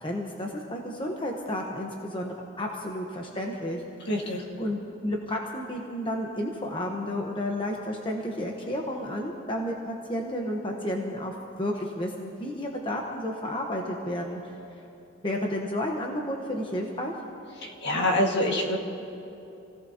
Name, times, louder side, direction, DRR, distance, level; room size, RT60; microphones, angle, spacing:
voice 1, 0.0-14.6 15.2-17.1, left 1 dB, 25° left, 0 dB, 1.1 m, -32 dB
voice 2, 4.1-4.4 17.6-18.8, left 1 dB, 55° left, 0 dB, 1.9 m, -25 dB
28.0 x 17.0 x 2.9 m, 2.9 s
head